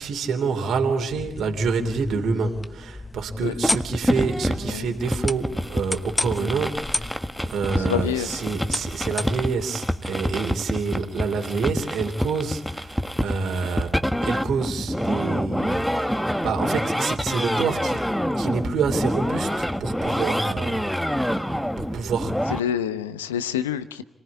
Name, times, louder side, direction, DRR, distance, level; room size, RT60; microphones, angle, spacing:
voice 1, 0.0-7.2 7.5-18.1 18.4-21.4 21.9-22.4, right 5 dB, 65° right, 4 dB, 3.2 m, -27 dB
sound 1, 1.1-9.6, left 2 dB, 20° left, 1.2 m, -33 dB
sound 2, 3.6-22.6, equal, 5° left, 1.6 m, -27 dB
voice 2, 7.8-8.4 22.5-24.0, left 9 dB, 85° left, 13 dB, 1.0 m, -27 dB
30.0 x 19.5 x 9.8 m, 0.79 s
hypercardioid pair, 40°, 0 cm